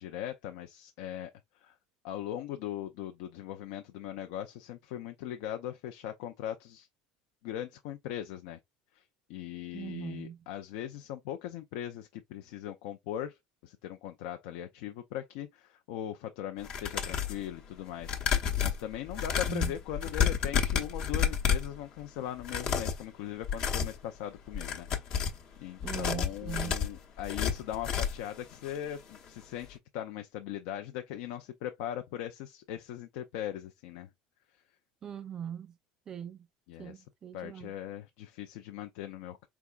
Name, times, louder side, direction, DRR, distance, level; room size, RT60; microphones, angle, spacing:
voice 1, 0.0-1.8 2.0-6.9 7.4-8.6 8.9-9.0 9.3-34.1 36.7-37.0 37.3-39.5, left 11 dB, 75° left, 0.5 m, -40 dB
voice 2, 9.7-10.4 19.5-19.7 25.8-26.7 35.0-35.7 36.1-36.5 36.8-37.7, right 9 dB, 30° right, 0.4 m, -40 dB
sound 1, 16.6-17.4 18.0-21.8 22.4-23.0 23.4-24.0 24.5-25.4 25.8-28.3 28.7-28.8 29.1-29.2, left 7 dB, 55° left, 0.9 m, -30 dB
4.6 x 3.4 x 2.4 m
supercardioid pair, 120°, 2 cm